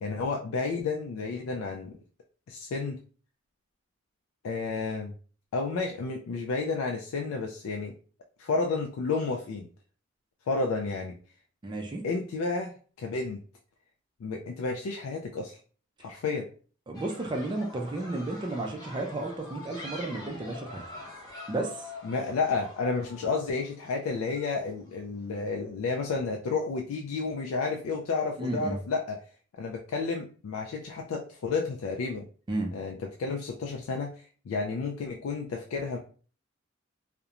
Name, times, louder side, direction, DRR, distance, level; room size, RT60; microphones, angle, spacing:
voice 1, 0.0-2.0 2.5-3.0 4.4-5.1 5.5-7.9 8.4-9.7 10.5-11.2 12.0-13.4 14.2-15.6 16.0-16.5 22.0-29.2 29.5-32.3 32.7-36.0, left 4 dB, 90° left, 2 dB, 0.3 m, -31 dB
voice 2, 11.6-12.0 16.9-20.8 21.5-21.9 28.4-28.8 32.5-32.7, right 2 dB, 20° right, 3 dB, 0.3 m, -32 dB
sound 1, 16.9-24.9, left 2 dB, 20° left, 0.7 m, -45 dB
2.4 x 2.1 x 2.8 m, 0.41 s
head